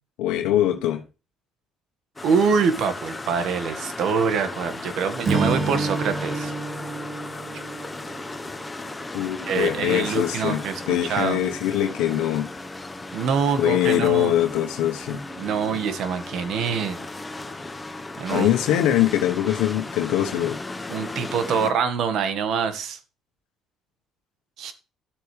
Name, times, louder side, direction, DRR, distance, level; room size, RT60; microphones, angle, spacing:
voice 1, 0.2-1.0 9.1-12.5 13.6-15.2 18.3-20.6, left 12 dB, 90° left, 1.4 m, -23 dB
sound 1, 2.2-21.7, left 2 dB, 15° left, 1.3 m, -36 dB
voice 2, 2.2-6.5 9.5-11.4 13.1-14.3 15.4-17.1 18.2-18.5 20.9-23.0 24.6-24.7, right 6 dB, 70° right, 1.9 m, -25 dB
Strum, 5.2-9.6, right 3 dB, 45° right, 2.3 m, -29 dB
12.5 x 8.1 x 3.5 m
cardioid pair, 90°, 0 cm